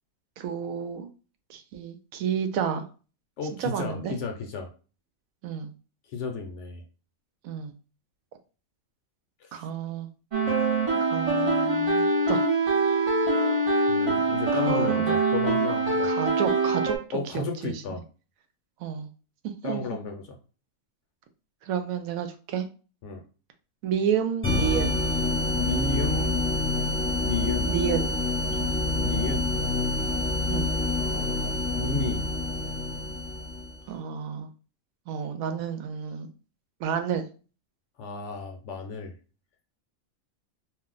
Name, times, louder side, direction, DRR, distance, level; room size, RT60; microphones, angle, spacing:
voice 1, 0.4-1.1 1.5-2.8 3.6-4.1 5.4-5.7 7.4-7.7 9.5-10.1 11.1-12.4 14.5-15.2 16.0-16.9 17.3-17.8 18.8-19.1 19.4-20.0 21.6-22.7 23.8-25.0 27.7-28.1 28.5-28.7 30.5-30.7 33.9-34.5 35.1-36.3 36.8-37.3, right 7 dB, 80° right, 7 dB, 1.0 m, -30 dB
voice 2, 3.4-4.7 6.1-6.8 9.4-9.6 13.9-16.1 17.1-18.0 19.6-20.2 23.0-23.2 25.5-26.4 27.2-27.7 29.0-29.5 31.0-32.2 38.0-39.1, left 4 dB, 65° left, 4 dB, 0.8 m, -33 dB
sound 1, 10.3-17.0, right 2 dB, 40° right, 0.5 m, -24 dB
sound 2, 24.4-33.8, left 2 dB, 10° left, 0.7 m, -27 dB
2.5 x 2.1 x 3.8 m, 0.35 s
omnidirectional pair, 1.4 m